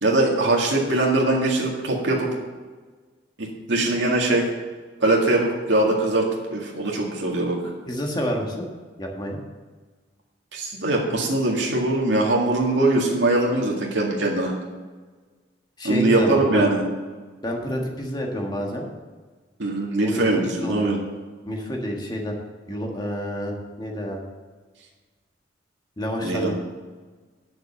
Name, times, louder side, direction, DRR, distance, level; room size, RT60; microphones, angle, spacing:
voice 1, 0.0-2.3 3.4-4.5 5.0-7.6 10.5-14.5 15.8-16.8 19.6-21.0 26.2-26.5, right 2 dB, 80° right, -2 dB, 2.0 m, -21 dB
voice 2, 7.9-8.7 9.0-9.4 15.8-16.7 17.4-18.9 20.0-20.9 21.5-22.4 22.7-24.2 26.0-26.5, equal, 25° left, 1 dB, 1.6 m, -29 dB
9.4 x 6.7 x 6.8 m, 1.4 s
head